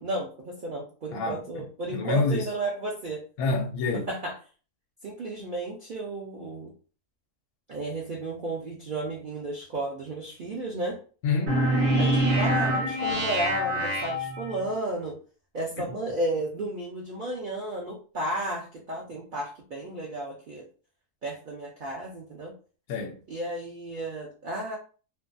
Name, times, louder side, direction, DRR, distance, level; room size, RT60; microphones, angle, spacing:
voice 1, 0.0-3.2 3.9-4.3 5.0-6.7 7.7-11.0 12.0-15.2 15.5-20.7 21.2-22.5 23.3-24.8, right 2 dB, 90° right, 0.4 m, -33 dB
voice 2, 1.1-1.6 1.9-2.5 3.4-4.1 11.2-11.6 15.8-15.9 22.9-23.2, left 3 dB, 75° left, 1.0 m, -27 dB
sound 1, 11.5-14.8, right 1 dB, 50° right, 1.3 m, -25 dB
2.7 x 2.2 x 2.5 m
omnidirectional pair, 1.6 m